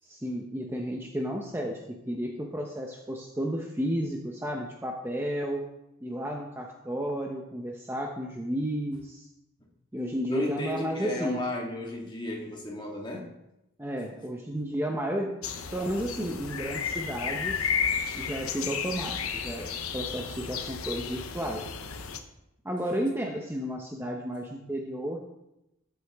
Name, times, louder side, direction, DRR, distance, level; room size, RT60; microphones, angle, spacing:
voice 1, 0.0-5.6 6.0-9.3 9.9-11.4 13.8-15.3 15.7-17.7 18.1-21.6 22.6-25.2, equal, 10° right, 1 dB, 0.8 m, -32 dB
voice 2, 10.3-13.3, left 2 dB, 20° left, -1 dB, 1.9 m, -34 dB
sound 1, 15.4-22.2, left 6 dB, 80° left, 0.9 m, -33 dB
13.5 x 8.1 x 3.6 m, 0.88 s
head